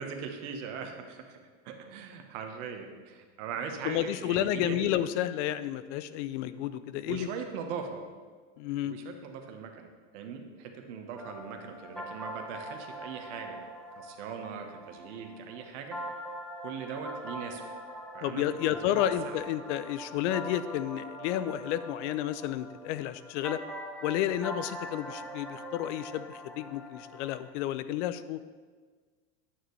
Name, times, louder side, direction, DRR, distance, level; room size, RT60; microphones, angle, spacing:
voice 1, 0.0-1.4 1.6-4.9 7.1-8.0 8.8-13.6 13.9-16.0 16.6-17.7 18.1-19.5, right 6 dB, 70° right, 5 dB, 1.2 m, -40 dB
voice 2, 3.8-7.3 8.6-9.0 18.2-23.6 24.0-28.4, left 12 dB, 70° left, 14 dB, 0.5 m, -31 dB
sound 1, 11.2-27.5, equal, ahead, 0.3 m, -43 dB
9.1 x 6.8 x 3.2 m, 1.5 s
supercardioid pair, 135°, 37 cm